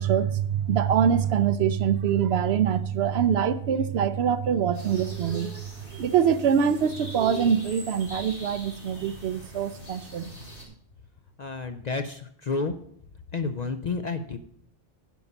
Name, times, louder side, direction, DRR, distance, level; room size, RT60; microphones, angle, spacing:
voice 1, 0.0-10.3, right 8 dB, 65° right, 0.8 m, -24 dB
sound 1, 4.7-10.6, equal, 75° left, 3.5 m, -43 dB
voice 2, 11.4-12.7 13.3-14.4, left 4 dB, 50° left, 0.5 m, -30 dB
10.5 x 5.4 x 7.0 m
omnidirectional pair, 1.2 m